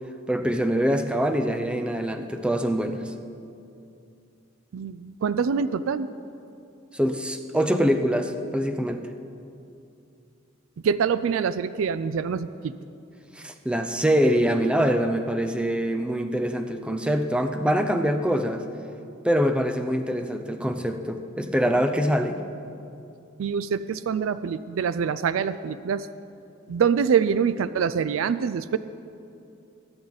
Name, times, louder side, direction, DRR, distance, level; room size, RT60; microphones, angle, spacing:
voice 1, 0.3-3.1 6.9-9.0 13.4-18.6 19.2-22.4, equal, 5° right, 6 dB, 0.6 m, -24 dB
voice 2, 4.7-6.1 10.8-12.7 23.4-26.1 26.7-28.8, right 6 dB, 75° right, 14 dB, 0.4 m, -25 dB
21.0 x 8.7 x 4.0 m, 2.6 s
head